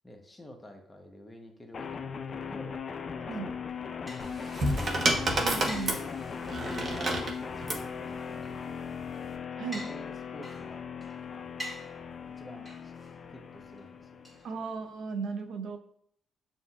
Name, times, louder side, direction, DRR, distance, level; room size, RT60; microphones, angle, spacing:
voice 1, 0.0-2.8 3.2-3.7 6.9-8.8 9.7-10.8 11.3-11.5 12.2-12.9 13.3-14.2, left 1 dB, 15° left, 2 dB, 0.9 m, -50 dB
sound 1, 1.7-14.7, left 6 dB, 45° left, 0.4 m, -39 dB
sound 2, 3.5-15.1, left 1 dB, 10° right, 1.8 m, -49 dB
sound 3, 4.2-7.9 8.9-9.3, right 1 dB, 45° right, 1.0 m, -30 dB
voice 2, 5.4-6.0 9.6-9.9 14.4-15.8, right 5 dB, 70° right, 6 dB, 0.5 m, -36 dB
7.1 x 2.7 x 2.4 m, 0.65 s
cardioid pair, 90°, 0 cm